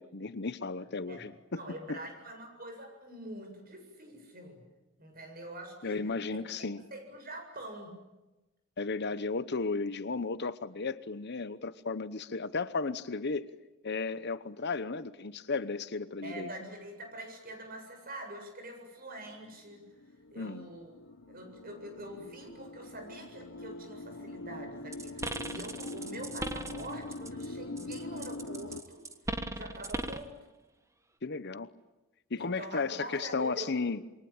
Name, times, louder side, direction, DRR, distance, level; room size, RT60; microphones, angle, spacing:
voice 1, 0.0-1.6 1.9-2.0 5.8-6.8 8.8-13.5 13.8-16.5 20.4-20.7 31.2-31.7 32.3-34.0, left 4 dB, 55° left, 14 dB, 1.0 m, -34 dB
voice 2, 1.5-4.6 5.0-6.4 6.9-7.9 16.2-19.9 20.3-20.9 21.3-29.0 29.5-30.4 32.4-33.7, right 1 dB, 45° right, 5 dB, 7.7 m, -45 dB
sound 1, 19.2-28.8, left 2 dB, 75° left, 1.2 m, -44 dB
sound 2, 24.9-27.5 27.8-30.3, right 2 dB, 15° right, 1.4 m, -38 dB
28.0 x 23.5 x 8.9 m, 1.1 s
head